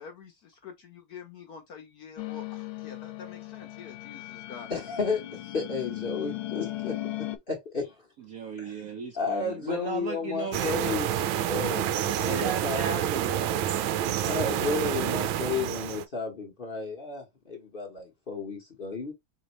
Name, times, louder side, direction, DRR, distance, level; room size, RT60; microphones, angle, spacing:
voice 1, 0.0-4.7, left 6 dB, 60° left, 1.0 m, -47 dB
sound 1, 2.2-7.4, left 16 dB, 80° left, 1.3 m, -37 dB
voice 2, 4.7-6.9 7.5-7.9 9.2-11.1 11.4-11.9 12.2-12.8 14.2-19.1, left 4 dB, 40° left, 0.9 m, -32 dB
voice 3, 8.3-10.9 12.2-13.6, right 5 dB, 65° right, 0.8 m, -36 dB
sound 2, 10.5-16.0, right 11 dB, 85° right, 1.4 m, -28 dB
3.9 x 3.5 x 3.0 m
omnidirectional pair, 2.2 m